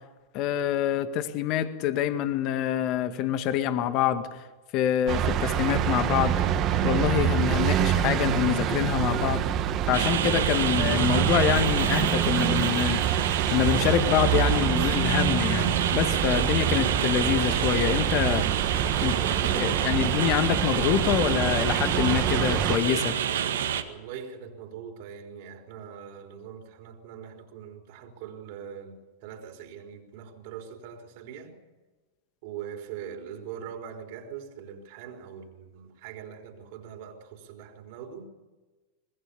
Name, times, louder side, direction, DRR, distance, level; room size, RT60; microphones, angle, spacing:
voice 1, 0.3-4.3 4.7-6.4 6.8-9.4 9.9-13.2 13.5-18.5 19.0-19.2 19.6-23.2, left 10 dB, 50° left, 2.0 m, -26 dB
sound 1, 5.1-22.8, right 9 dB, 40° right, 2.0 m, -26 dB
sound 2, 9.9-23.8, right 9 dB, 75° right, 1.9 m, -28 dB
voice 2, 19.0-20.2 23.9-31.6 32.4-38.3, right 8 dB, 60° right, 4.1 m, -42 dB
24.5 x 21.0 x 7.0 m
hypercardioid pair, 95°, 0 cm